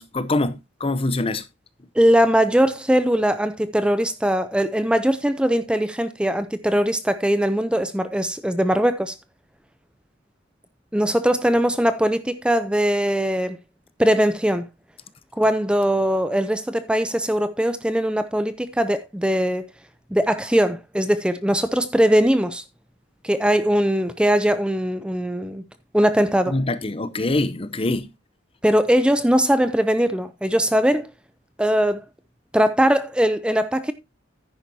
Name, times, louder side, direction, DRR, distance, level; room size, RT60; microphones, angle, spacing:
voice 1, 0.0-1.5 26.5-28.1, left 2 dB, 30° left, 0.7 m, -24 dB
voice 2, 2.0-9.1 10.9-13.6 14.0-14.7 15.4-19.7 20.1-22.6 23.2-25.6 25.9-26.6 28.6-31.1 31.6-32.0 32.5-33.9, equal, 5° right, 0.5 m, -20 dB
10.0 x 10.0 x 2.8 m
head